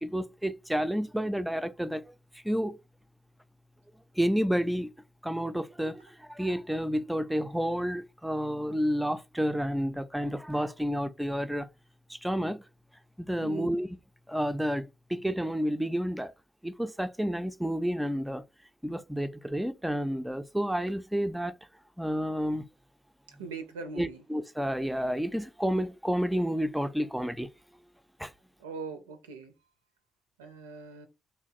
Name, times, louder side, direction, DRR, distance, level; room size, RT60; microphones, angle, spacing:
voice 1, 0.0-2.0 2.4-2.8 4.2-4.9 5.2-11.7 12.1-12.6 13.2-13.9 14.3-16.3 16.6-18.4 18.8-21.5 22.0-22.7 24.0-27.5 28.2-28.3, equal, 5° right, 0.3 m, -30 dB
voice 2, 13.4-13.7 23.4-24.2 28.6-29.5 30.4-31.1, right 4 dB, 75° right, 0.4 m, -40 dB
2.9 x 2.0 x 2.6 m
figure-of-eight pair, 40°, 0 cm